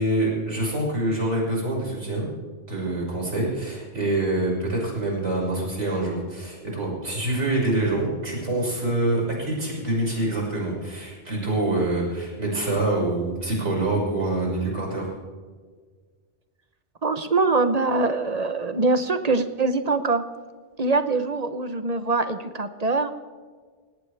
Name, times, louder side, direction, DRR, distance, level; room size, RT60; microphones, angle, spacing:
voice 1, 0.0-2.3 2.7-15.1, right 2 dB, 85° right, -3 dB, 6.1 m, -25 dB
voice 2, 17.0-20.2 20.8-23.1, right 3 dB, 35° right, 10 dB, 1.0 m, -23 dB
19.0 x 18.0 x 3.4 m, 1.5 s
omnidirectional pair, 1.2 m